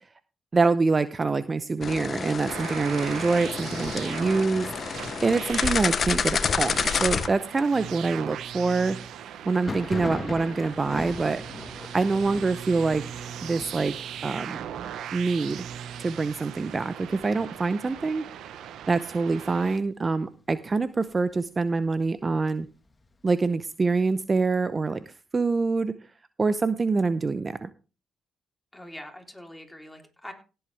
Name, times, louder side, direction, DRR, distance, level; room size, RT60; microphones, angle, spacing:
voice 1, 0.5-4.7 5.2-9.0 9.4-11.4 11.9-13.0 13.4-13.9 14.2-14.6 15.1-15.7 16.0-18.2 18.9-22.7 23.2-25.0 25.3-25.9 26.4-27.7, right 4 dB, 35° right, 13 dB, 0.7 m, -25 dB
sound 1, 1.8-7.3, left 6 dB, 55° left, 0.9 m, -29 dB
sound 2, 2.5-19.8, right 9 dB, 80° right, 0.9 m, -39 dB
Thunder, 9.5-19.0 19.3-20.0 20.2-21.2 21.6-23.3, left 3 dB, 30° left, 2.0 m, -41 dB
voice 2, 28.7-30.3, left 1 dB, 10° left, 3 dB, 3.5 m, -43 dB
16.5 x 7.9 x 3.4 m, 0.32 s
supercardioid pair, 55°, 0 cm